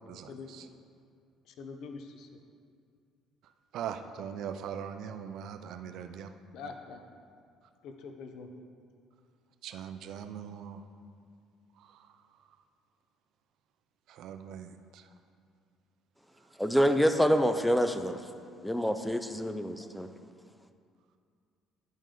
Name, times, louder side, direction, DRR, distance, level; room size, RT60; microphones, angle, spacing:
voice 1, 0.1-0.7 3.7-6.3 9.6-10.8 11.8-11.9 14.1-15.0, right 8 dB, 70° right, 9 dB, 0.5 m, -41 dB
voice 2, 1.5-2.3 6.5-7.0 7.8-8.5, left 4 dB, 70° left, 5 dB, 0.8 m, -44 dB
voice 3, 16.6-18.2 18.6-20.1, equal, 5° left, 8 dB, 0.4 m, -26 dB
10.5 x 5.3 x 3.8 m, 2.3 s
cardioid pair, 100°, 0 cm